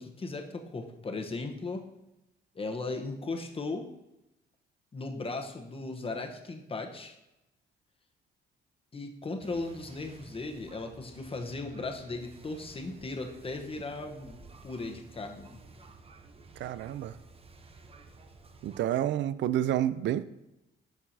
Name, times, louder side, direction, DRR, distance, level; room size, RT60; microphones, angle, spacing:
voice 1, 0.0-1.9 2.5-3.9 4.9-7.1 8.9-15.6, left 3 dB, 30° left, 4 dB, 1.0 m, -37 dB
sound 1, 9.4-18.8, right 3 dB, 30° right, 0.7 m, -53 dB
voice 2, 16.6-17.1 18.6-20.2, right 11 dB, 65° right, 15 dB, 0.4 m, -29 dB
11.5 x 4.7 x 2.7 m, 0.92 s
cardioid pair, 90°, 20 cm